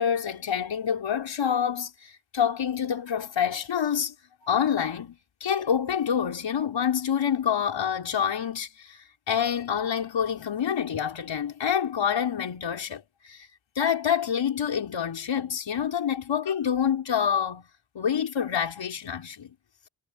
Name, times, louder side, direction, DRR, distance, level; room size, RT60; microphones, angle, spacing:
voice 1, 0.0-4.1 4.4-13.5 13.8-17.7 17.9-19.5, left 8 dB, 80° left, 5.7 m, -27 dB
cardioid pair, 75°, 43 cm